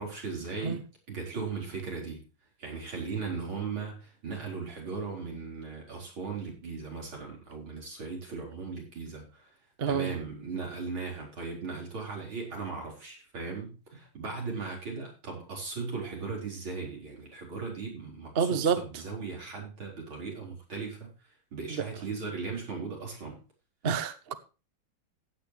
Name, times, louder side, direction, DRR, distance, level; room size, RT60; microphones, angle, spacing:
voice 1, 0.0-2.2 2.6-9.5 9.9-21.1 21.5-23.4, right 4 dB, 80° right, 5.3 m, -37 dB
voice 2, 18.4-18.8 23.8-24.3, right 6 dB, 45° right, 0.8 m, -27 dB
15.5 x 9.1 x 3.2 m
omnidirectional pair, 2.2 m